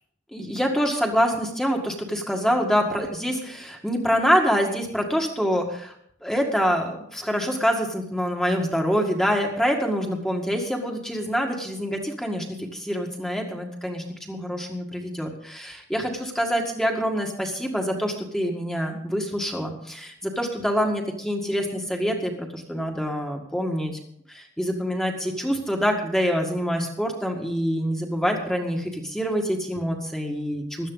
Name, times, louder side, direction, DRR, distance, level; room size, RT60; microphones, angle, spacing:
voice 1, 0.3-5.9 6.2-24.0 24.3-30.9, equal, 5° left, 1 dB, 1.8 m, -26 dB
16.5 x 12.0 x 4.0 m, 0.67 s
head